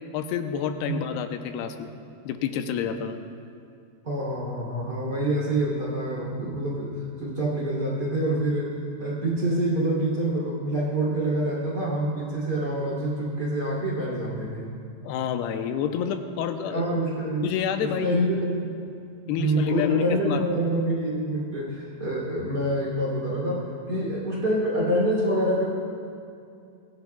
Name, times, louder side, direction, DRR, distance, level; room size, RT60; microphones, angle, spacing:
voice 1, 0.1-1.9 2.3-3.2 15.0-16.8 17.4-18.2 19.3-20.4, left 8 dB, 90° left, 7 dB, 2.7 m, -28 dB
voice 2, 4.0-14.7 16.6-17.5 17.8-18.7 19.3-25.6, right 1 dB, 25° right, -5 dB, 3.0 m, -26 dB
22.5 x 16.0 x 2.3 m, 2.5 s
omnidirectional pair, 4.6 m